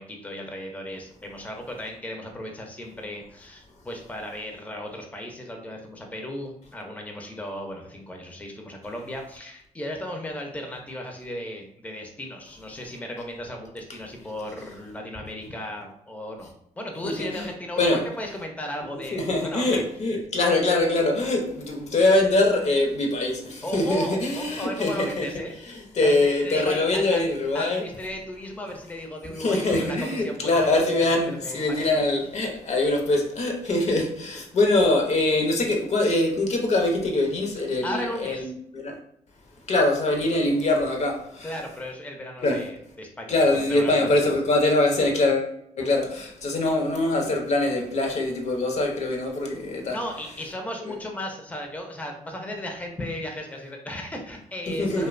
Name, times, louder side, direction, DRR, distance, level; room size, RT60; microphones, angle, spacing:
voice 1, 0.0-19.8 23.6-27.2 27.5-30.6 31.1-32.1 37.8-38.5 41.4-44.3 45.8-45.9 49.9-55.1, equal, 10° left, 0.5 m, -35 dB
voice 2, 17.0-17.5 17.8-18.0 19.1-25.3 25.7-27.8 29.4-39.0 39.7-41.5 42.4-42.6 43.3-50.0 54.7-55.1, left 2 dB, 60° left, 0.6 m, -23 dB
2.6 x 2.1 x 2.4 m
cardioid pair, 65°, 13 cm